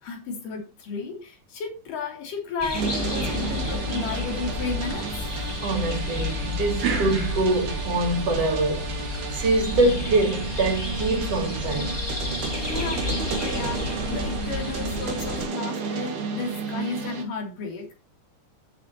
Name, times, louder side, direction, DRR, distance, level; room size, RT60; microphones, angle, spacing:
voice 1, 0.0-5.3 12.5-17.9, left 4 dB, 80° left, 4.7 m, -33 dB
sound 1, 2.6-15.4, left 3 dB, 10° left, 1.4 m, -31 dB
sound 2, 2.7-17.2, right 5 dB, 75° right, 3.5 m, -33 dB
voice 2, 5.6-9.0 9.3-12.0, right 2 dB, 50° right, 3.8 m, -24 dB
15.0 x 7.2 x 3.0 m
omnidirectional pair, 3.7 m